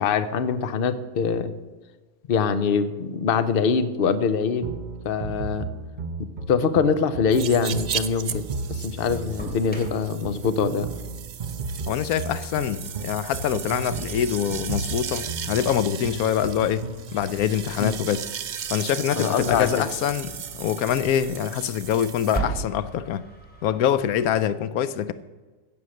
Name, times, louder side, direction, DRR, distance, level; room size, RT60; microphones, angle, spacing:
voice 1, 0.0-1.5 2.3-4.7 5.0-5.7 6.5-10.9 17.8-18.0 19.2-19.9, left 6 dB, 45° left, 0.9 m, -23 dB
sound 1, 4.6-17.1, right 4 dB, 40° right, 0.8 m, -34 dB
sound 2, 7.3-22.4, right 8 dB, 65° right, 0.4 m, -36 dB
Engine starting, 7.5-24.5, right 3 dB, 5° left, 2.8 m, -41 dB
voice 2, 11.9-16.9 17.1-18.2 18.7-23.2 23.6-25.1, left 9 dB, 85° left, 1.1 m, -25 dB
16.0 x 7.2 x 6.5 m
omnidirectional pair, 1.5 m